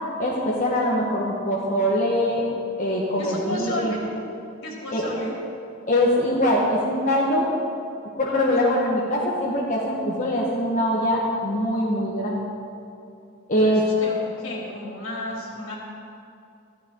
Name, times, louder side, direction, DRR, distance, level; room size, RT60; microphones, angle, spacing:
voice 1, 0.2-2.5 2.8-4.0 4.9-5.1 5.9-7.5 8.2-12.5 13.5-13.8, equal, 40° left, -4 dB, 1.7 m, -23 dB
voice 2, 3.2-4.0 4.6-5.3 13.6-15.7, left 1 dB, 75° left, -3 dB, 4.0 m, -33 dB
14.5 x 14.0 x 4.8 m, 2.6 s
head